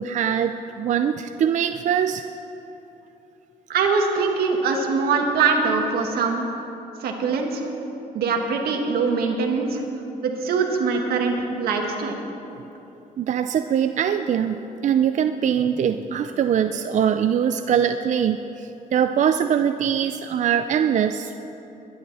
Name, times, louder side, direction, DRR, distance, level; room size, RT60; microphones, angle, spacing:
voice 1, 0.0-2.2 13.2-21.3, right 8 dB, 50° right, 8 dB, 0.5 m, -22 dB
voice 2, 3.7-6.5 7.0-7.6 8.1-9.8 10.2-12.2, right 4 dB, 85° right, 2 dB, 1.8 m, -23 dB
21.5 x 11.0 x 4.2 m, 3.0 s
cardioid pair, 110°, 16 cm